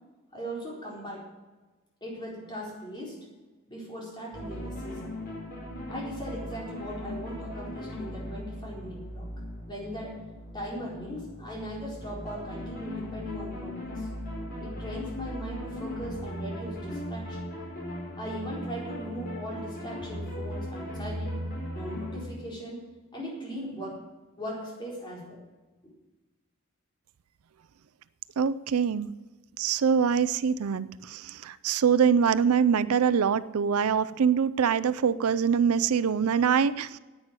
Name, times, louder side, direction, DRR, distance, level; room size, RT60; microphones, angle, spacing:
voice 1, 0.3-1.2 2.0-3.3 3.7-5.1 5.9-9.3 9.7-10.2 10.5-14.1 14.6-17.4 18.2-21.4 21.7-22.9 23.1-24.0 24.4-25.4, equal, 20° left, -4 dB, 4.2 m, -39 dB
sound 1, 4.3-22.2, equal, 40° left, 4.5 m, -38 dB
voice 2, 28.4-29.1 29.6-37.0, right 7 dB, 75° right, 15 dB, 0.4 m, -24 dB
10.5 x 9.0 x 8.9 m, 1.2 s
head